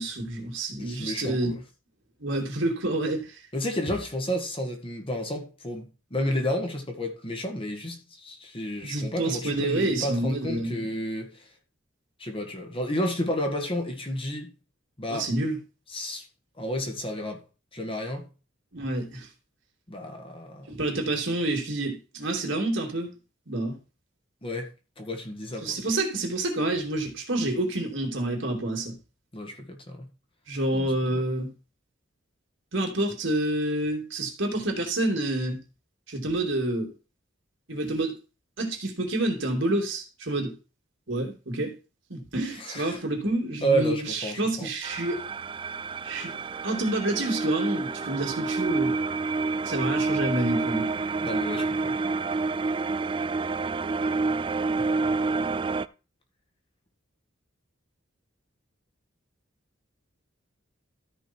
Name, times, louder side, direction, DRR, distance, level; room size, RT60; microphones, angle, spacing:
voice 1, 0.0-1.6 2.2-3.4 8.8-11.0 15.1-15.6 18.7-19.3 20.7-23.1 23.5-23.8 25.6-29.0 30.5-31.5 32.7-35.6 36.1-36.9 37.7-38.2 38.6-40.5 41.1-41.7 42.1-45.3 46.0-46.3 46.6-49.0 49.6-51.0, right 2 dB, 65° right, 2.9 m, -28 dB
voice 2, 0.8-1.6 3.5-5.8 6.1-11.4 12.2-14.5 15.0-15.3 15.9-16.3 16.6-17.4 17.7-18.3 19.9-20.8 24.4-24.7 25.0-25.8 29.3-30.1 30.7-31.2 42.6-43.0 43.6-44.7 51.2-52.0, equal, 30° left, 1.9 m, -31 dB
sound 1, 44.8-55.9, right 3 dB, 25° right, 0.4 m, -28 dB
13.5 x 5.4 x 4.6 m
head